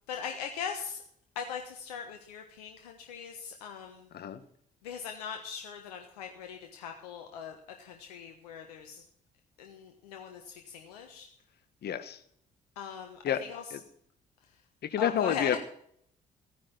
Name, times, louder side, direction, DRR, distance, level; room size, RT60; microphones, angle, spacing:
voice 1, 0.1-1.0 1.3-4.1 4.8-9.0 9.6-11.3 12.8-13.6 15.0-15.6, left 7 dB, 80° left, 4 dB, 1.3 m, -40 dB
voice 2, 11.8-12.2 13.2-13.4 13.7-13.8 14.8-15.6, left 9 dB, 55° left, 12 dB, 1.5 m, -29 dB
15.5 x 9.7 x 5.9 m, 0.65 s
hypercardioid pair, 50°, 20 cm